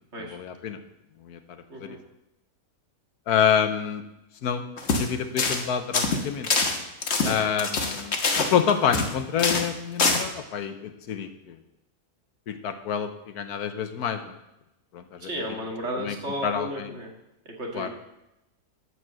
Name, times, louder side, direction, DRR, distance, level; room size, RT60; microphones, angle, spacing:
voice 1, 0.2-0.8 1.2-2.0 3.3-4.0 4.4-6.5 7.2-11.6 12.5-14.3 14.9-15.3 15.9-16.1 16.4-16.9 17.7-17.9, left 8 dB, 85° left, 9 dB, 1.4 m, -28 dB
sound 1, 4.8-5.1 5.4-5.6 5.9-9.1 9.4-9.7 10.0-10.2, left 4 dB, 50° left, 1.4 m, -24 dB
voice 2, 15.2-17.1 17.5-17.9, equal, 45° right, 0 dB, 2.2 m, -34 dB
12.5 x 4.9 x 7.6 m, 0.91 s
omnidirectional pair, 1.6 m